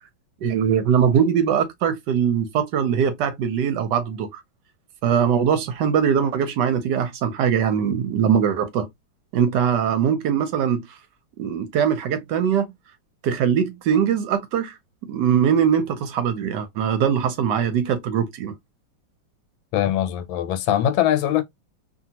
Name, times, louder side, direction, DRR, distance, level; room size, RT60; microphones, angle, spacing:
voice 1, 0.4-4.4 5.0-8.9 9.3-10.9 11.4-12.7 13.2-14.7 15.1-18.5, right 8 dB, 75° right, 1.1 m, -21 dB
voice 2, 19.7-21.4, left 11 dB, 85° left, 1.4 m, -21 dB
2.7 x 2.6 x 2.8 m
omnidirectional pair, 2.1 m